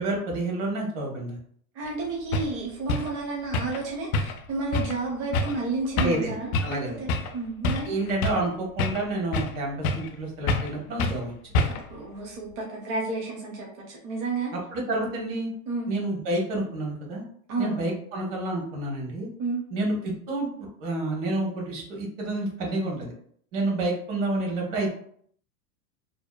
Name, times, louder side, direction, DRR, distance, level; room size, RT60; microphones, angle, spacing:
voice 1, 0.0-1.4 6.0-6.4 6.6-7.0 7.8-11.5 14.5-15.5 15.9-17.2 17.6-19.3 19.7-23.1 23.5-24.9, right 2 dB, 60° right, -1 dB, 1.2 m, -29 dB
voice 2, 1.7-7.9 11.7-14.5 15.7-15.9 17.5-17.8 19.4-19.6, right 3 dB, 35° right, -2 dB, 0.6 m, -31 dB
sound 1, 1.9-2.0 2.3-2.5 2.9-3.1 3.5-3.8 4.1-4.5 4.7-5.0 5.3-5.6 6.0-6.2 6.5-6.8 7.1-7.3 7.6-8.5 8.8-9.6 9.8-10.1 10.5-10.7 11.0-11.2 11.5-11.9, left 2 dB, 85° left, 0.5 m, -27 dB
2.8 x 2.1 x 2.2 m, 0.62 s
supercardioid pair, 130°, 41 cm